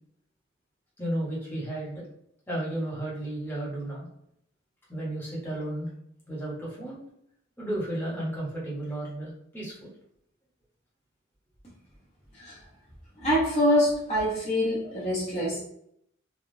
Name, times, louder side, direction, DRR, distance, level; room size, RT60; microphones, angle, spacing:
voice 1, 1.0-2.1 2.5-4.1 4.9-5.9 6.3-7.0 7.6-9.9, right 1 dB, 10° left, -6 dB, 1.0 m, -33 dB
voice 2, 13.2-15.6, equal, 30° left, -7 dB, 0.8 m, -25 dB
3.4 x 2.4 x 2.7 m, 0.72 s
head